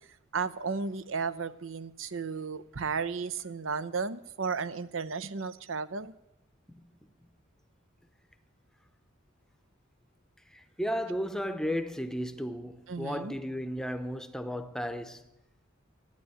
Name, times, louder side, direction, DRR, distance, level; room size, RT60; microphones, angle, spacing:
voice 1, 0.3-6.1 12.9-13.4, right 5 dB, 75° right, 0.7 m, -34 dB
voice 2, 10.5-15.2, equal, 5° left, 0.8 m, -34 dB
14.0 x 10.0 x 8.6 m
head